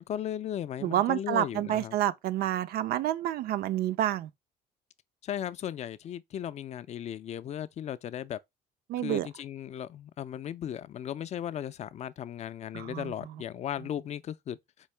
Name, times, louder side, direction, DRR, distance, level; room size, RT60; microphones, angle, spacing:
voice 1, 0.0-2.0 5.2-8.4 9.0-14.6, left 10 dB, 40° left, 0.4 m, -36 dB
voice 2, 0.8-4.3 8.9-9.3 12.7-13.1, right 12 dB, 65° right, 0.4 m, -29 dB
4.5 x 2.8 x 3.2 m
cardioid pair, 110°, 17 cm